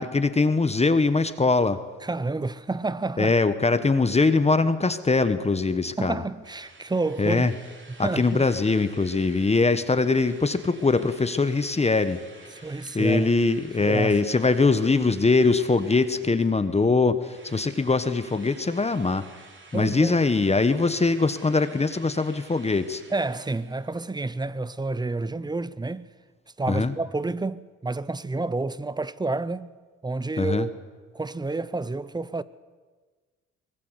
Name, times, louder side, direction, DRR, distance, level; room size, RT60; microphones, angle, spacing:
voice 1, 0.0-1.8 3.2-6.2 7.2-7.5 8.0-12.2 12.9-19.3 19.7-23.0 26.7-26.9 30.4-30.7, left 3 dB, 20° left, 1.3 m, -22 dB
voice 2, 2.0-3.3 6.0-7.5 8.0-8.4 12.6-13.3 13.8-14.2 19.7-20.2 23.1-26.1 26.6-29.7 30.0-30.7 31.1-32.4, right 3 dB, 15° right, 0.8 m, -29 dB
Drill, 6.4-16.8 17.2-24.1, right 3 dB, 40° right, 3.6 m, -51 dB
24.0 x 19.5 x 8.1 m
cardioid pair, 90°, 30 cm